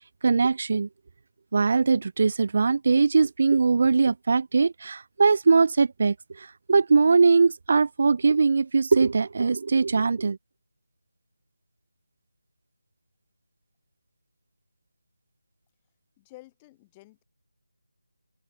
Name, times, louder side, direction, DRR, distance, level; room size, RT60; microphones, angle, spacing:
voice 1, 0.2-0.9 1.5-10.4, right 4 dB, 45° right, 0.3 m, -21 dB
voice 2, 16.2-17.2, left 20 dB, 15° left, 1.7 m, -51 dB
figure-of-eight pair, 160°, 0 cm